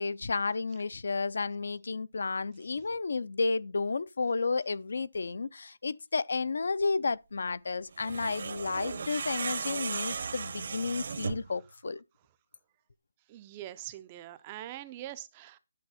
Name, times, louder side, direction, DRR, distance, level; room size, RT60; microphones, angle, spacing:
voice 1, 0.0-12.0, left 4 dB, 60° left, 0.5 m, -32 dB
sound 1, 7.9-11.5, right 5 dB, 45° right, 0.8 m, -36 dB
voice 2, 13.3-15.6, right 13 dB, 15° right, 0.4 m, -43 dB
10.5 x 6.3 x 4.2 m
hypercardioid pair, 180°, 0 cm